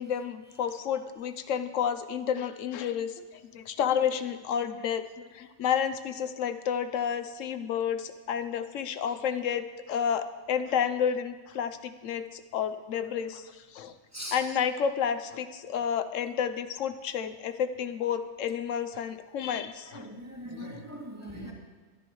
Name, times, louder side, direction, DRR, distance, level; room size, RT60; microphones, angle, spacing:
voice 1, 0.0-3.2 3.5-14.0 14.3-20.0, left 8 dB, 85° left, 10 dB, 1.0 m, -30 dB
voice 2, 19.8-21.5, equal, 10° right, -3 dB, 2.4 m, -40 dB
22.5 x 10.5 x 3.1 m, 1.4 s
omnidirectional pair, 1.3 m